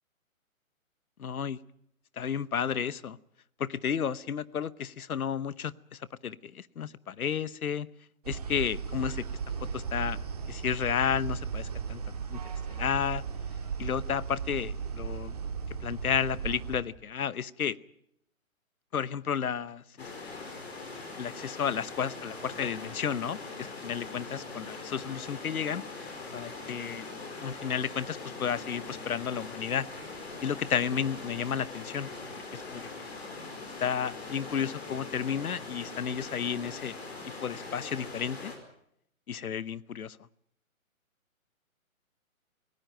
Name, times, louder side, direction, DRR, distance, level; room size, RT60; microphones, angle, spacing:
voice 1, 1.2-1.6 2.2-3.2 3.6-7.9 8.3-9.2 9.7-10.2 10.5-12.0 12.3-12.4 12.7-13.2 13.8-15.4 15.8-17.8 18.9-20.4 21.2-25.8 26.3-27.0 27.4-29.9 30.4-32.1 32.5-32.9 33.8-37.0 37.4-38.5 39.3-40.2, left 7 dB, 80° left, 19 dB, 1.0 m, -32 dB
sound 1, 8.2-16.8, right 6 dB, 25° right, 1.9 m, -36 dB
sound 2, 20.0-38.6, left 3 dB, 45° left, 4.9 m, -42 dB
sound 3, 22.8-37.1, left 8 dB, 15° left, 2.0 m, -54 dB
19.5 x 18.0 x 9.3 m, 0.75 s
hypercardioid pair, 180°, 42 cm